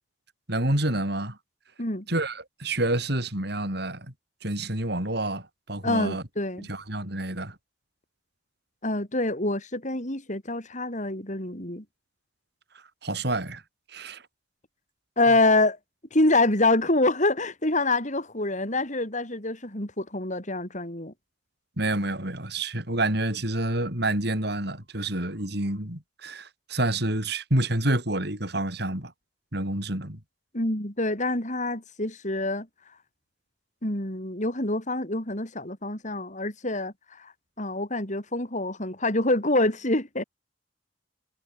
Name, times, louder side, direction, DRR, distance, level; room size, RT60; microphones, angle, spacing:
voice 1, 0.5-1.4 2.1-4.1 4.4-6.2 6.6-7.6 13.0-13.6 13.9-14.2 21.8-29.1 29.5-30.2, right 1 dB, 65° right, 7.3 m, -28 dB
voice 2, 5.8-6.7 8.8-11.8 15.2-15.8 16.1-21.1 30.5-32.7 33.8-40.2, left 2 dB, 40° left, 6.7 m, -26 dB
head